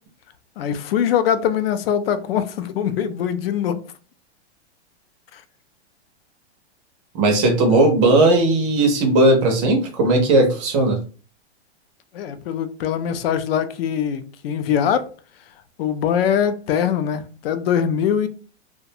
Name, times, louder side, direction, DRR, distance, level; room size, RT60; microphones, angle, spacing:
voice 1, 0.6-3.8 5.3-5.4 12.1-15.1 15.8-18.3, left 8 dB, 60° left, 0.4 m, -22 dB
voice 2, 7.1-11.0, right 2 dB, 30° right, 0.5 m, -17 dB
2.4 x 2.2 x 2.7 m
hypercardioid pair, 155°, 34 cm